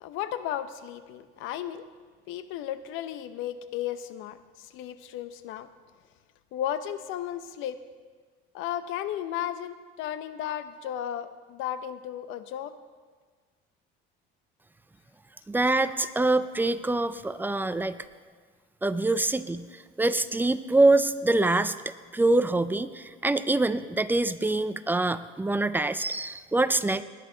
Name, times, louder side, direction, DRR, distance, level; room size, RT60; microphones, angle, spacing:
voice 1, 0.0-1.9 2.3-5.7 6.5-7.8 8.5-12.8 15.8-16.1, left 11 dB, 75° left, 12 dB, 0.7 m, -34 dB
voice 2, 15.5-18.0 18.8-21.8 22.1-27.0, right 2 dB, 10° right, 12 dB, 0.4 m, -25 dB
19.5 x 10.0 x 3.9 m, 1.5 s
cardioid pair, 115°, 20 cm